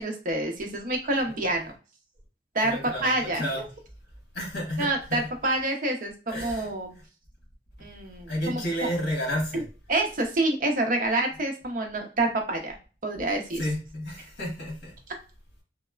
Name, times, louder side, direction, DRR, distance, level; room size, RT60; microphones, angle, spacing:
voice 1, 0.0-1.7 2.5-3.6 4.8-6.9 7.8-8.9 9.5-9.6 9.9-12.8 13.0-13.6, right 2 dB, 50° right, 3 dB, 0.5 m, -27 dB
voice 2, 2.6-3.6 4.3-5.2 6.3-6.7 7.0-7.1 8.3-9.6 13.5-14.9, equal, 65° left, -1 dB, 1.1 m, -31 dB
3.0 x 2.0 x 2.3 m, 0.35 s
head